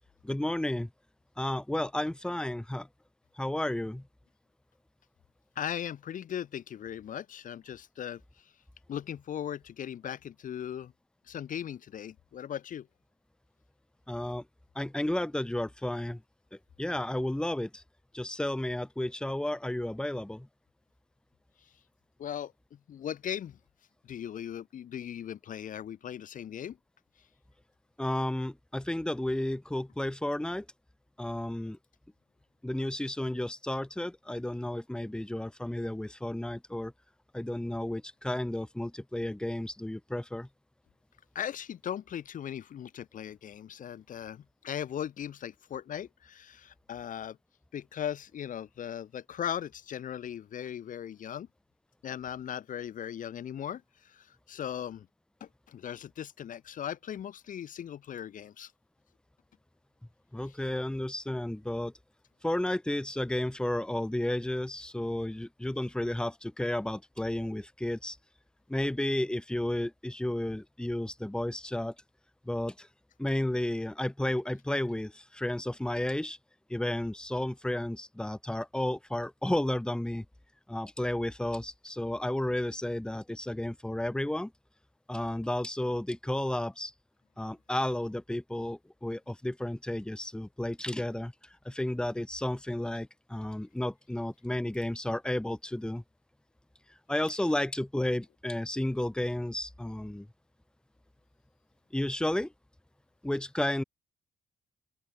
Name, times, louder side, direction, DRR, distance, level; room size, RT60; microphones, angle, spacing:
voice 1, 0.2-0.9 1.4-2.9 3.4-4.0 14.1-14.4 14.8-16.2 16.8-17.8 18.1-20.5 28.0-30.7 31.2-31.8 32.6-36.9 37.3-40.5 60.3-61.9 62.4-68.2 68.7-71.9 72.5-72.9 73.2-76.4 76.7-80.2 80.7-84.5 85.1-86.9 87.4-91.3 91.6-96.0 97.1-100.3 101.9-102.5 103.2-103.8, left 1 dB, 5° left, 2.4 m, -32 dB
voice 2, 5.6-8.5 8.9-10.9 11.3-12.9 22.2-23.6 24.0-26.8 41.3-47.4 47.7-51.5 52.0-55.1 55.4-58.7, left 9 dB, 60° left, 2.3 m, -38 dB
open air
cardioid pair, 115°, 15 cm